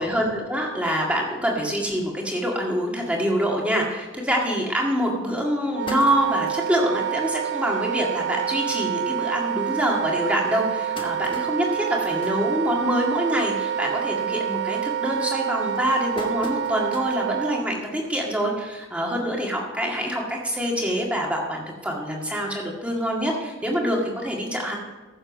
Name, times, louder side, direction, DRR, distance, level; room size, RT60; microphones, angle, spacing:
voice 1, 0.0-24.8, equal, 5° right, -1 dB, 1.9 m, -25 dB
sound 1, 4.7-4.8 5.3-5.4 5.6-6.7 7.2-7.3 7.6-7.7 8.0-8.2 8.9-9.0 9.6-9.7 10.4-13.2 13.6-13.9 14.3-14.7 15.3-17.3 17.8-17.9 19.0-19.1, left 1 dB, 25° left, 1.2 m, -40 dB
Wind instrument woodwind instrument, 5.7-17.6, right 9 dB, 60° right, 0.3 m, -28 dB
14.5 x 7.0 x 5.3 m, 1.2 s
head